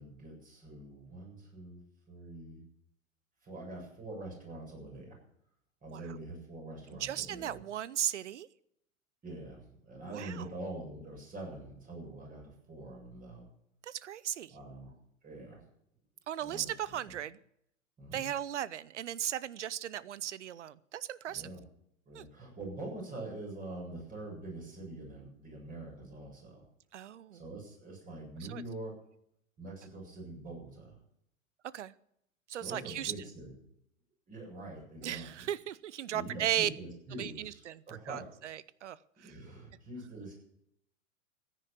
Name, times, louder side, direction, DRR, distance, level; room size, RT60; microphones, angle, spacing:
voice 1, 0.0-1.8 2.1-2.6 3.4-5.2 5.8-7.6 9.2-13.5 14.5-14.9 15.2-15.6 16.4-17.2 18.0-18.3 21.3-21.6 22.1-26.6 27.3-28.9 29.6-31.0 32.5-33.5 34.3-35.5 36.1-38.2 39.2-40.3, right 2 dB, 20° right, 0 dB, 7.6 m, -45 dB
voice 2, 6.9-8.5 10.1-10.4 13.8-14.5 16.3-17.4 18.1-21.4 22.1-22.3 26.9-27.4 28.5-28.6 31.7-31.9 32.5-33.1 35.0-36.7 37.2-39.0, right 11 dB, 65° right, 20 dB, 0.8 m, -36 dB
15.5 x 9.9 x 6.9 m, 0.75 s
figure-of-eight pair, 95°, 39 cm